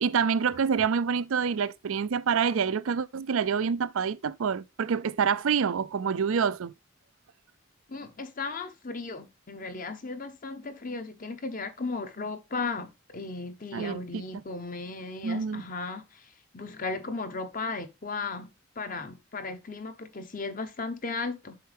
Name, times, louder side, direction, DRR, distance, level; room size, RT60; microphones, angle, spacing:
voice 1, 0.0-6.7 13.7-14.2 15.2-15.6, right 6 dB, 70° right, 0.4 m, -27 dB
voice 2, 7.9-16.2 16.5-21.6, left 3 dB, 40° left, 0.9 m, -36 dB
7.7 x 5.6 x 3.4 m
head